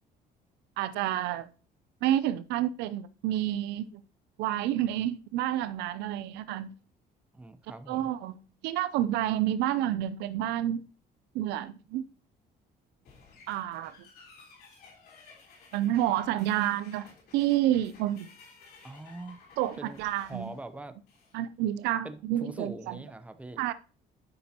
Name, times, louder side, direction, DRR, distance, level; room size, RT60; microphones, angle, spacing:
voice 1, 0.8-1.5 2.0-4.0 4.4-6.7 7.9-8.4 8.6-10.8 11.3-12.1 13.5-13.9 15.7-18.3 19.6-20.5 21.3-23.0 23.6-23.7, right 12 dB, 90° right, 0.5 m, -29 dB
voice 2, 7.3-8.1 18.8-19.4 19.8-21.0 22.0-23.6, right 2 dB, 10° right, 0.7 m, -43 dB
sound 1, 13.0-21.4, left 4 dB, 70° left, 3.1 m, -55 dB
11.5 x 5.3 x 2.8 m
cardioid pair, 110°, 17 cm